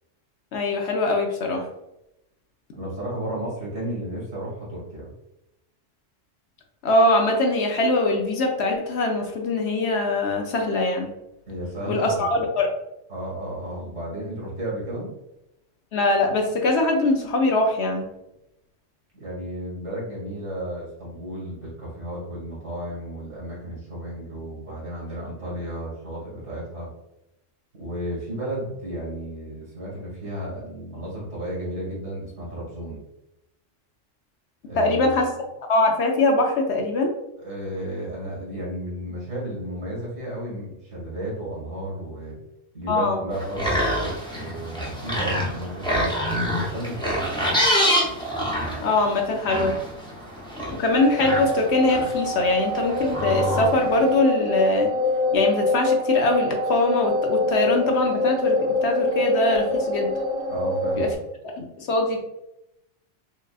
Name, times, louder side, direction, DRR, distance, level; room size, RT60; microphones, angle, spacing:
voice 1, 0.5-1.7 6.8-11.1 11.9-12.7 15.9-18.1 34.8-35.3 35.7-37.1 42.9-43.2 48.8-49.8 50.8-54.9 55.3-60.1 60.9-61.1 61.5-62.2, left 2 dB, 65° left, 2 dB, 0.9 m, -22 dB
voice 2, 2.7-5.1 11.5-12.7 13.1-15.1 19.1-26.9 27.7-33.0 34.6-35.2 37.4-42.4 42.7-47.4 60.5-61.2, right 1 dB, 75° right, -5 dB, 1.8 m, -33 dB
sound 1, 43.3-54.1, equal, 5° left, 0.5 m, -27 dB
sound 2, 50.9-61.2, left 2 dB, 30° left, 1.1 m, -25 dB
5.3 x 2.3 x 2.3 m, 0.87 s
omnidirectional pair, 1.3 m